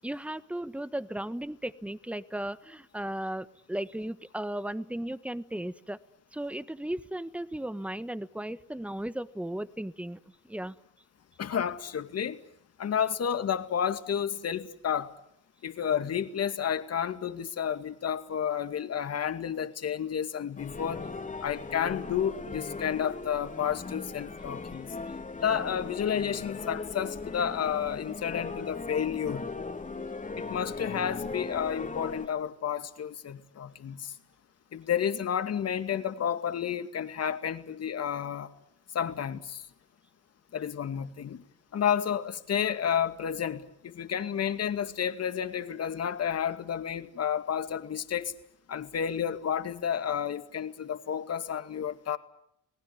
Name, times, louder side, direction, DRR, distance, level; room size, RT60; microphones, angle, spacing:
voice 1, 0.0-6.0 6.3-10.2 10.4-10.7, right 1 dB, 5° right, 14 dB, 1.3 m, -36 dB
voice 2, 11.4-12.4 12.8-15.1 15.6-21.0 21.4-24.9 25.4-29.5 30.4-34.1 34.7-38.5 38.9-39.7 40.5-41.4 41.7-48.3 48.7-52.2, left 8 dB, 55° left, 10 dB, 2.3 m, -31 dB
sound 1, 20.6-32.3, left 3 dB, 25° left, 2.6 m, -38 dB
29.0 x 19.0 x 9.6 m, 0.75 s
cardioid pair, 90°, 30 cm